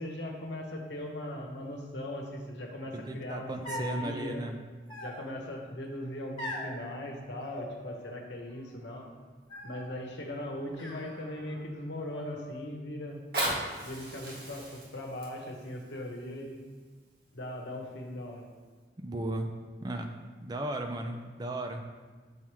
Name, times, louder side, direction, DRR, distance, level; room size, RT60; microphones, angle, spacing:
voice 1, 0.0-4.4 5.0-9.1 9.6-13.2 13.8-16.6 17.3-18.4, left 1 dB, 85° left, 1 dB, 1.0 m, -39 dB
voice 2, 2.9-4.5 19.0-19.5 19.8-20.1 20.4-21.8, right 1 dB, 25° right, 5 dB, 0.4 m, -35 dB
sound 1, 3.6-4.1 4.9-5.6 6.4-6.8 7.4-8.2 8.5-9.0 9.5-10.0 10.7-11.6 12.0-12.7, equal, 30° left, 1.2 m, -42 dB
Fire, 13.1-18.0 18.7-18.8, right 1 dB, 55° right, 1.7 m, -38 dB
7.1 x 3.0 x 4.8 m, 1.4 s
head